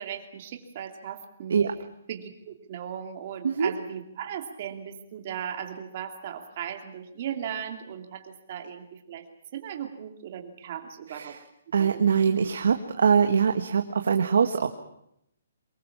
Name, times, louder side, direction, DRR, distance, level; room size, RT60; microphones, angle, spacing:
voice 1, 0.0-1.6 2.1-9.2 9.5-11.4 11.8-11.9 12.4-12.6, right 9 dB, 35° right, 5 dB, 2.8 m, -37 dB
voice 2, 11.7-14.7, right 6 dB, 65° right, 6 dB, 1.6 m, -23 dB
24.0 x 21.0 x 7.4 m, 0.76 s
hypercardioid pair, 170°, 0 cm